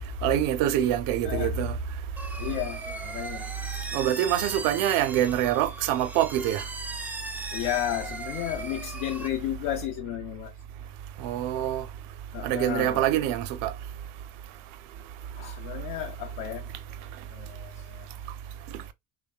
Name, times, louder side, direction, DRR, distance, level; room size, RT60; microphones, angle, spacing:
voice 1, 0.2-1.7 3.9-6.6 11.2-11.8 12.4-13.7, right 12 dB, 55° right, 0.5 m, -25 dB
voice 2, 1.2-1.6 2.4-3.5 7.5-10.5 12.3-13.0 15.4-16.7 17.3-18.1, left 10 dB, 60° left, 0.5 m, -33 dB
sound 1, 2.2-9.3, right 2 dB, 5° right, 0.3 m, -38 dB
2.6 x 2.1 x 2.2 m
hypercardioid pair, 80°, 39 cm